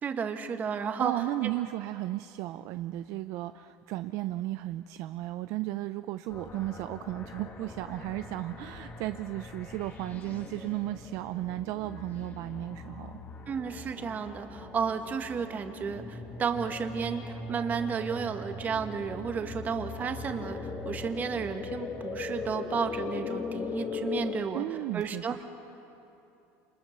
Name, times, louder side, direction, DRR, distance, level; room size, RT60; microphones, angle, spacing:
voice 1, 0.0-1.1 13.5-20.6 20.8-24.6 24.9-25.4, right 6 dB, 25° right, 6 dB, 1.7 m, -32 dB
voice 2, 1.0-13.2 24.5-25.4, right 16 dB, 60° right, 10 dB, 0.6 m, -34 dB
sound 1, 6.3-24.4, left 4 dB, 30° left, 2.1 m, -40 dB
29.0 x 28.0 x 6.8 m, 2.9 s
cardioid pair, 155°, 6 cm